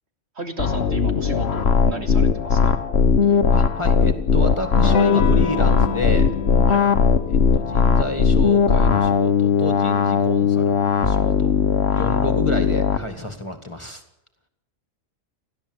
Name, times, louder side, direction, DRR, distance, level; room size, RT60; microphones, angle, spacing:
voice 1, 0.3-2.8 6.7-6.8, right 3 dB, 50° right, 3 dB, 2.8 m, -34 dB
sound 1, 0.6-13.0, left 6 dB, 55° left, 1.2 m, -18 dB
voice 2, 3.3-6.3 7.3-11.5 11.9-14.0, left 1 dB, 20° left, 6 dB, 1.9 m, -30 dB
Electric guitar / Strum, 4.8-10.1, left 6 dB, 80° left, 1.5 m, -30 dB
30.0 x 12.5 x 8.0 m, 0.88 s
omnidirectional pair, 1.4 m